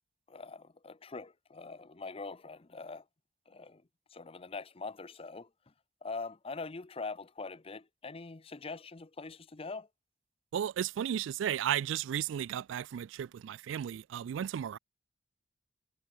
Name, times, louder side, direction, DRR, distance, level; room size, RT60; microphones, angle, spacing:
voice 1, 0.3-3.0 3.5-3.8 4.1-5.5 6.0-9.9, left 3 dB, 30° left, 0.7 m, -43 dB
voice 2, 10.5-14.8, right 9 dB, 80° right, 0.3 m, -34 dB
head